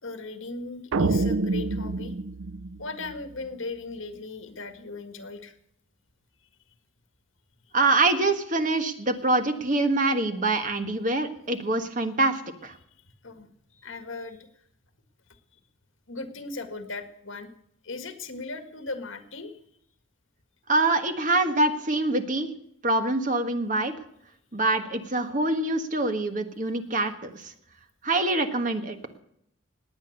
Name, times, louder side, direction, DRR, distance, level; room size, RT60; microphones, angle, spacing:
voice 1, 0.0-2.1 2.8-5.5 13.2-14.5 16.1-17.5 17.8-19.6, left 3 dB, 75° left, 8 dB, 1.9 m, -38 dB
sound 1, 0.9-3.4, right 3 dB, 80° right, 0.5 m, -27 dB
voice 2, 7.7-12.8 20.7-22.5 22.8-23.9 24.5-27.5 28.0-29.0, right 2 dB, 40° right, 7 dB, 1.4 m, -25 dB
19.5 x 9.0 x 6.6 m, 0.72 s
head